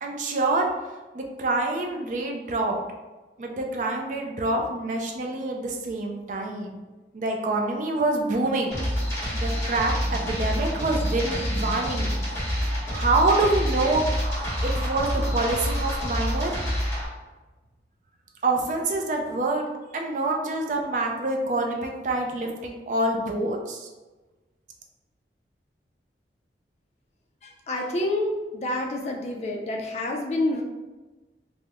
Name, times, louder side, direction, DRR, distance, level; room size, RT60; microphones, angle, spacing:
voice 1, 0.0-0.7 1.1-2.8 3.4-6.8 7.1-9.0 9.3-12.1 12.9-14.3 14.6-16.6 18.4-19.6 19.9-23.9, right 2 dB, 45° right, 1 dB, 0.4 m, -26 dB
sound 1, 8.7-17.1, equal, 15° left, 0.9 m, -27 dB
voice 2, 27.4-30.6, left 1 dB, 40° left, 1 dB, 0.3 m, -28 dB
3.4 x 2.0 x 2.9 m, 1.2 s
head